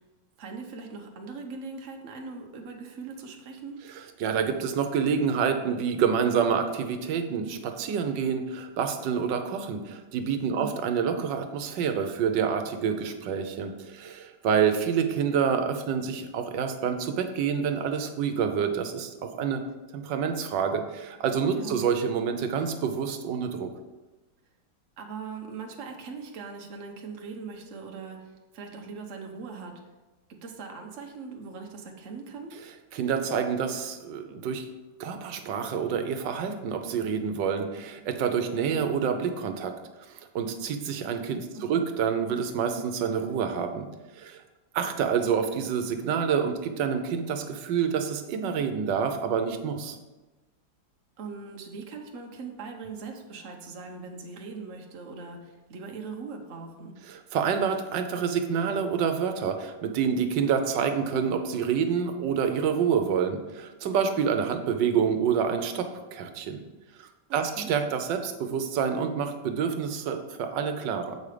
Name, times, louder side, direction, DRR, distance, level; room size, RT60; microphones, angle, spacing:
voice 1, 0.4-3.8 10.5-10.8 21.5-21.8 25.0-29.8 30.3-32.6 41.5-41.9 51.2-56.9 67.3-67.7, right 4 dB, 50° right, 2 dB, 1.2 m, -40 dB
voice 2, 4.2-19.6 19.9-23.7 32.9-34.6 35.0-39.7 40.1-43.9 44.2-44.4 44.7-50.0 57.1-66.6 67.0-71.2, right 7 dB, 80° right, 7 dB, 1.5 m, -27 dB
7.5 x 5.4 x 5.0 m, 1.1 s
omnidirectional pair, 1.9 m